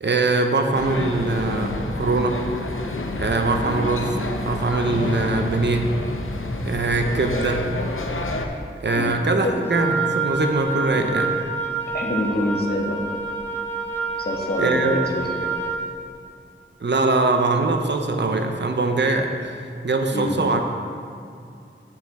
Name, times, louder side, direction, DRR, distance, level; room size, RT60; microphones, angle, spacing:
voice 1, 0.0-2.4 3.2-4.1 4.5-5.9 6.7-7.7 8.8-11.3 14.6-14.9 16.8-19.5 19.8-20.6, right 3 dB, 60° right, 5 dB, 0.7 m, -22 dB
sound 1, 0.7-8.5, left 2 dB, 75° left, 0.7 m, -29 dB
voice 2, 8.9-9.6 10.9-11.1 11.9-13.0 14.2-15.5 20.1-20.4, left 1 dB, 50° left, 0 dB, 1.2 m, -26 dB
Wind instrument woodwind instrument, 9.6-15.9, right 4 dB, 10° left, 1.4 m, -27 dB
8.3 x 6.8 x 4.1 m, 2.4 s
wide cardioid pair, 45°, 21 cm